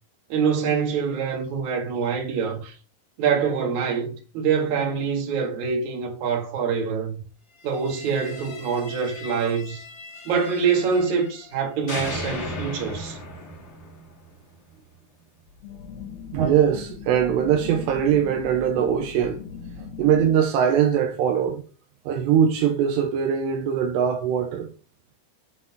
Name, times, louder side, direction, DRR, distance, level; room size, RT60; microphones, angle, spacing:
voice 1, 0.3-2.7 3.2-7.2 7.6-9.8 10.3-13.2, right 6 dB, 50° right, 2.7 m, -25 dB
sound 1, 7.7-11.6 11.9-14.9, left 2 dB, 55° left, 1.3 m, -37 dB
sound 2, 15.5-20.4, left 6 dB, 75° left, 2.6 m, -39 dB
voice 2, 16.3-19.4 20.0-21.6 22.1-24.7, right 8 dB, 85° right, 2.9 m, -21 dB
7.7 x 3.9 x 5.8 m
omnidirectional pair, 5.0 m